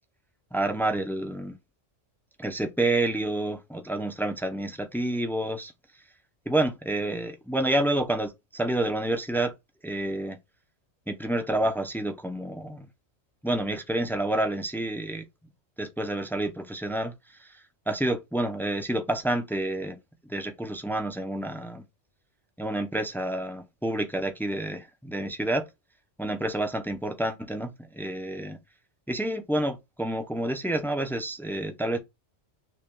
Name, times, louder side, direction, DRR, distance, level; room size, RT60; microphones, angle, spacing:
voice 1, 0.5-1.6 2.4-5.7 6.5-9.5 9.8-10.4 11.1-12.9 13.4-15.2 15.8-17.1 17.4-20.0 20.2-21.8 22.6-25.7 26.2-28.6 29.1-32.0, right 1 dB, 5° left, 0.3 m, -29 dB
6.4 x 2.3 x 3.6 m
omnidirectional pair, 1.2 m